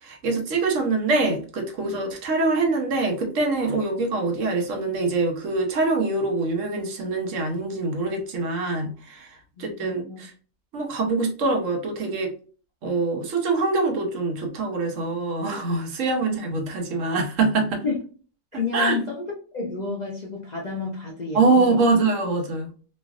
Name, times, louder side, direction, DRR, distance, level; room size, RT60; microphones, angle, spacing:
voice 1, 0.0-10.3 10.7-12.3 12.8-17.8 18.5-19.0 21.3-22.7, right 3 dB, 70° right, 3 dB, 1.1 m, -24 dB
voice 2, 9.6-10.2 17.8-18.0 18.5-21.7, left 4 dB, 55° left, -2 dB, 0.4 m, -30 dB
3.1 x 2.5 x 2.3 m, 0.40 s
omnidirectional pair, 1.4 m